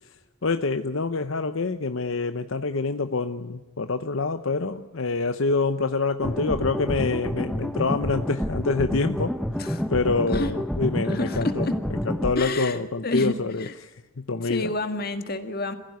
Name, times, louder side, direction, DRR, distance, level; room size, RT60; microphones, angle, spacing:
voice 1, 0.4-14.7, left 3 dB, 70° left, 9 dB, 0.8 m, -26 dB
sound 1, 6.2-12.3, equal, ahead, 0.8 m, -28 dB
voice 2, 9.5-9.9 10.3-10.5 11.0-11.7 12.4-13.7 14.4-15.7, left 2 dB, 45° left, 8 dB, 2.0 m, -30 dB
28.0 x 16.0 x 9.5 m, 1.2 s
head